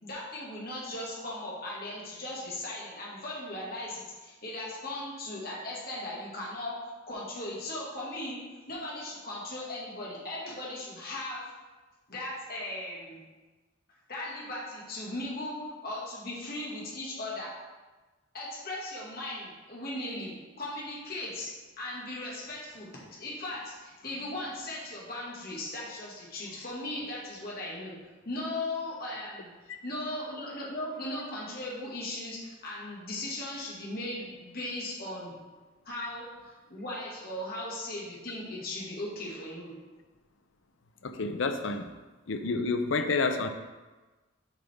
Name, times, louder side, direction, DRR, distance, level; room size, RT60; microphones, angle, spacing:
voice 1, 0.0-6.8 7.1-8.4 8.7-11.4 12.1-13.2 14.1-17.5 18.3-21.5 21.8-27.9 28.3-29.5 29.8-35.3 35.9-39.7, left 1 dB, 50° left, -5 dB, 1.9 m, -38 dB
voice 2, 41.0-41.9 42.3-43.5, left 3 dB, 75° left, 8 dB, 0.6 m, -29 dB
7.4 x 5.2 x 3.5 m, 1.2 s
head